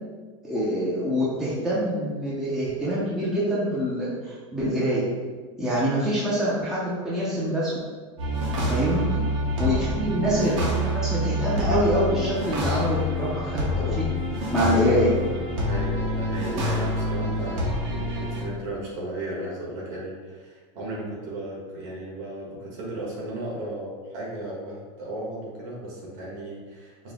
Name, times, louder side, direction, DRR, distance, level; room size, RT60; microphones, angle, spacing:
voice 1, 0.4-5.0 5.6-7.7 8.7-9.0 9.6-14.0 14.5-15.2, equal, 5° right, -8 dB, 0.5 m, -25 dB
sound 1, 8.2-18.4, left 1 dB, 80° right, 1.1 m, -27 dB
voice 2, 15.6-27.1, right 1 dB, 50° right, -5 dB, 1.4 m, -35 dB
5.0 x 2.1 x 3.5 m, 1.4 s
supercardioid pair, 170°, 16 cm